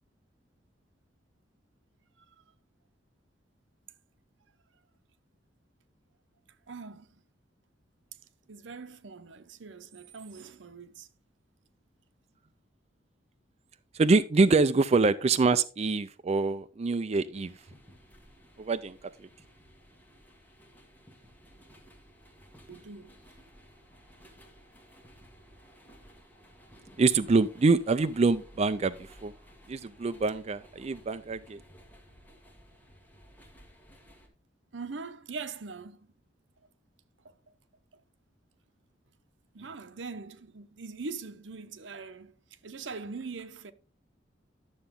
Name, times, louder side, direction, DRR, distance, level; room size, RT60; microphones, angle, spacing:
voice 1, 6.7-7.2 8.5-11.1 22.7-23.2 34.7-36.1 37.2-37.3 37.9-38.0 39.5-42.3 42.6-43.7, right 4 dB, 80° right, 0.8 m, -42 dB
voice 2, 13.9-17.6 18.6-19.3 27.0-29.3 29.7-31.6, right 3 dB, 35° right, 0.4 m, -25 dB
sound 1, 17.3-34.3, equal, 10° left, 1.9 m, -56 dB
12.0 x 6.9 x 3.6 m
head